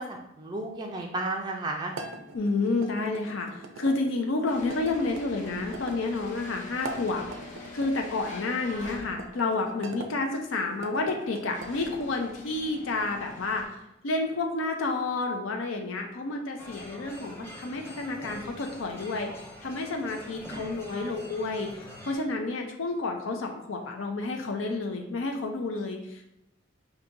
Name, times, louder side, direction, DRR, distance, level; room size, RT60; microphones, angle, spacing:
voice 1, 0.0-1.9 8.7-9.0 20.5-21.3, right 2 dB, 20° right, 0 dB, 0.3 m, -35 dB
sound 1, 1.9-4.0 4.7-6.0 6.7-7.9 8.8-10.1 10.7-12.1, right 2 dB, 90° right, 0.5 m, -42 dB
voice 2, 2.3-7.4 7.7-26.3, left 3 dB, 90° left, 3 dB, 0.5 m, -30 dB
sound 2, 4.5-9.5 10.4-10.5 11.2-13.7, left 3 dB, 40° left, 0.8 m, -45 dB
sound 3, 16.6-22.2, equal, 10° left, 0.7 m, -45 dB
5.8 x 2.7 x 2.6 m, 0.83 s
head